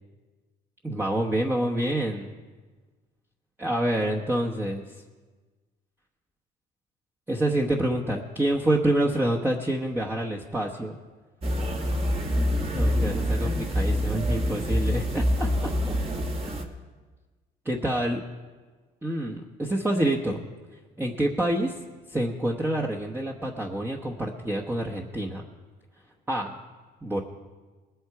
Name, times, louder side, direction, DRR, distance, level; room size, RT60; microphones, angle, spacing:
voice 1, 0.8-2.3 3.6-5.0 7.3-11.0 12.6-16.0 17.6-18.2 19.0-20.4 21.0-21.8 22.1-25.5 26.3-26.6 27.0-27.2, right 1 dB, 10° right, -2 dB, 1.0 m, -27 dB
sound 1, 11.4-16.7, equal, 35° right, 1.6 m, -26 dB
20.5 x 8.0 x 4.7 m, 1.3 s
cardioid pair, 110°, 17 cm